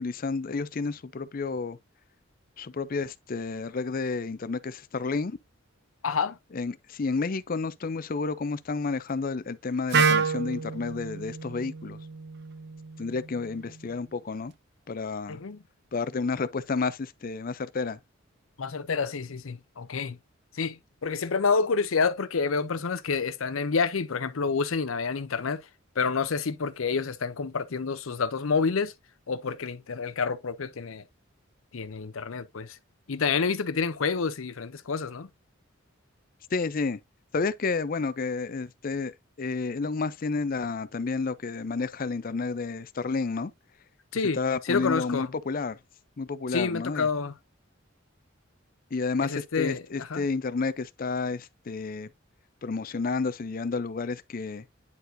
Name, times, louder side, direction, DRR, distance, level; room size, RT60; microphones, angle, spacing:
voice 1, 0.0-1.8 2.6-5.4 6.5-12.0 13.0-14.5 14.9-15.4 15.9-18.0 36.5-37.0 37.3-43.5 44.3-45.8 46.2-47.1 48.9-52.1 52.6-54.6, left 4 dB, 45° left, 0.5 m, -30 dB
voice 2, 6.0-6.4 15.3-15.6 18.6-20.2 20.5-25.6 26.0-28.9 29.3-31.0 31.7-32.8 33.1-35.3 44.1-44.4 44.6-45.3 46.5-47.3 49.2-50.3, left 5 dB, 80° left, 0.7 m, -28 dB
Wind instrument woodwind instrument, 9.9-13.8, right 5 dB, 55° right, 0.6 m, -29 dB
9.6 x 4.5 x 2.6 m
head